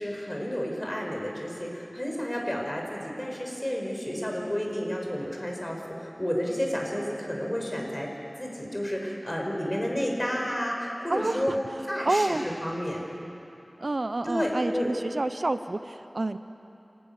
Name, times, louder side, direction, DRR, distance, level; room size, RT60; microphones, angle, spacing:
voice 1, 0.0-8.1 8.4-11.5 11.9-13.1 14.2-14.9, equal, 25° left, 0 dB, 5.3 m, -31 dB
voice 2, 11.1-11.4 12.1-12.4 13.8-16.4, right 2 dB, 65° right, 10 dB, 0.7 m, -28 dB
28.5 x 13.5 x 9.7 m, 2.8 s
wide cardioid pair, 50°, 0 cm